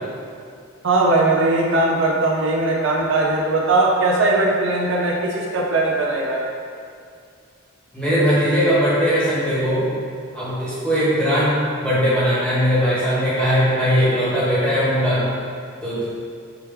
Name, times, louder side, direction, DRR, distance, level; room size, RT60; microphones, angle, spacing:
voice 1, 0.8-6.4, right 2 dB, 65° right, -2 dB, 0.5 m, -19 dB
voice 2, 7.9-9.9 10.3-15.3 15.8-16.1, equal, 5° left, -11 dB, 1.4 m, -19 dB
5.1 x 3.0 x 3.4 m, 2.3 s
head